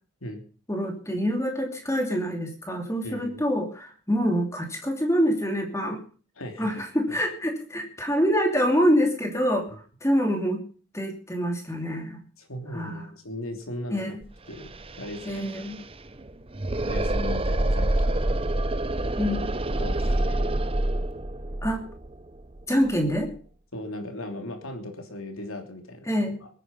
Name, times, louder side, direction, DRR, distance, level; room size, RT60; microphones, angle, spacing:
voice 1, 0.7-6.0 6.6-9.7 10.0-10.6 10.9-12.2 12.7-13.1 13.9-14.2 15.3-15.7 19.2-19.6 21.6-21.8 22.7-23.3 26.1-26.4, equal, 15° left, 4 dB, 2.8 m, -25 dB
voice 2, 3.0-3.4 6.4-7.2 12.4-14.2 14.5-14.7 15.0-15.5 16.7-18.5 19.8-20.6 23.7-26.5, left 1 dB, 70° left, 5 dB, 3.2 m, -38 dB
sound 1, 14.2-14.3 14.5-23.3, right 1 dB, 25° right, 0.7 m, -27 dB
21.0 x 9.8 x 5.6 m, 0.41 s
head